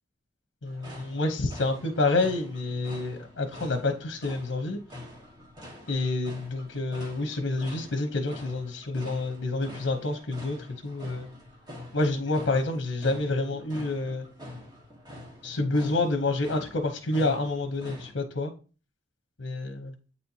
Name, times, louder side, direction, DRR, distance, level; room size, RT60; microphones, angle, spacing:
voice 1, 0.6-4.8 5.9-11.3 11.9-14.3 15.4-18.5 19.4-19.9, left 2 dB, 85° left, 5 dB, 0.9 m, -28 dB
sound 1, 0.7-18.1, left 1 dB, 25° right, 1.5 m, -45 dB
8.3 x 4.3 x 2.8 m, 0.35 s
head